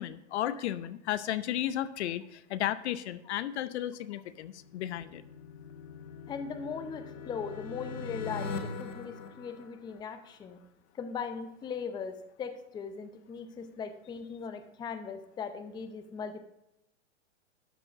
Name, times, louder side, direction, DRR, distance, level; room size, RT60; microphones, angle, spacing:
voice 1, 0.0-5.2, left 12 dB, 60° left, 15 dB, 0.7 m, -34 dB
sound 1, 4.5-10.3, left 4 dB, 85° left, 1.3 m, -42 dB
voice 2, 6.3-10.6 11.0-16.4, left 6 dB, 10° left, 9 dB, 0.6 m, -39 dB
12.5 x 4.6 x 6.0 m, 0.87 s
hypercardioid pair, 125°, 37 cm